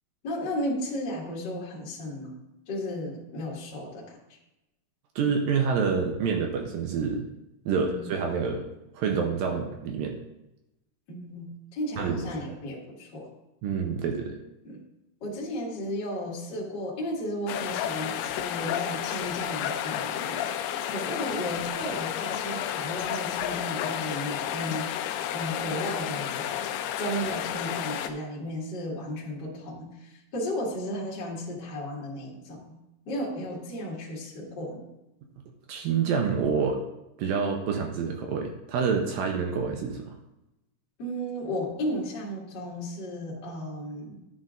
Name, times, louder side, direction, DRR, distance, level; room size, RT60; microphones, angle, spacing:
voice 1, 0.2-2.4 2.7-4.2 7.7-8.0 11.1-13.3 14.6-14.8 15.2-26.6 27.0-32.8 33.0-34.8 41.0-44.1, equal, 40° left, -5 dB, 1.7 m, -34 dB
voice 2, 5.2-7.2 7.7-8.6 8.9-10.2 12.0-12.3 13.6-14.4 35.7-36.8 37.2-40.1, right 5 dB, 80° right, 2 dB, 2.1 m, -27 dB
sound 1, 17.5-28.1, left 10 dB, 80° left, 2.3 m, -31 dB
10.5 x 8.1 x 2.5 m, 0.92 s
omnidirectional pair, 4.9 m